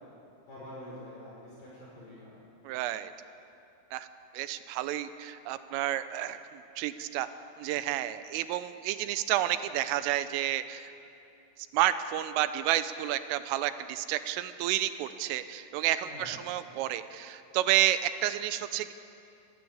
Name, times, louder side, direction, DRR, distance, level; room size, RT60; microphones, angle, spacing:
voice 1, 0.5-2.4 16.0-16.3, left 1 dB, 45° left, -6 dB, 6.7 m, -46 dB
voice 2, 2.6-3.1 3.9-4.1 4.3-7.3 7.6-10.9 11.7-18.9, right 13 dB, 80° right, 12 dB, 3.4 m, -30 dB
25.0 x 19.0 x 8.3 m, 2.7 s
omnidirectional pair, 5.9 m